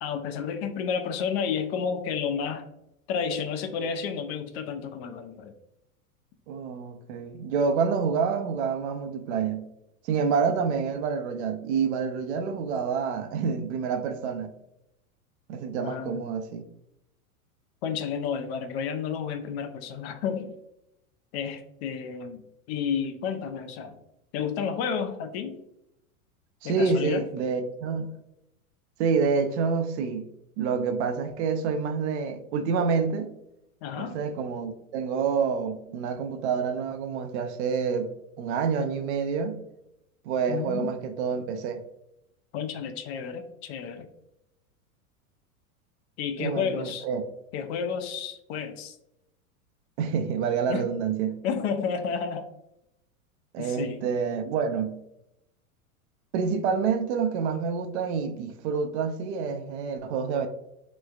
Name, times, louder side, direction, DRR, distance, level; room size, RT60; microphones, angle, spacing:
voice 1, 0.0-2.7 3.1-5.5 15.8-16.2 17.8-20.5 21.3-22.4 22.7-24.0 24.3-25.6 26.6-27.2 33.8-34.2 40.5-40.9 42.5-44.1 46.2-47.1 47.5-49.0 50.7-50.9 51.4-52.5 53.6-54.0, left 6 dB, 45° left, 0.5 m, -31 dB
voice 2, 6.5-9.7 10.0-14.5 15.5-16.6 26.6-28.1 29.0-30.3 30.6-33.3 34.0-38.1 38.4-39.6 40.2-41.8 46.4-47.2 50.0-51.4 53.5-55.0 56.3-60.5, right 5 dB, 50° right, 0.5 m, -27 dB
3.1 x 3.1 x 2.3 m
hypercardioid pair, 105°, 43 cm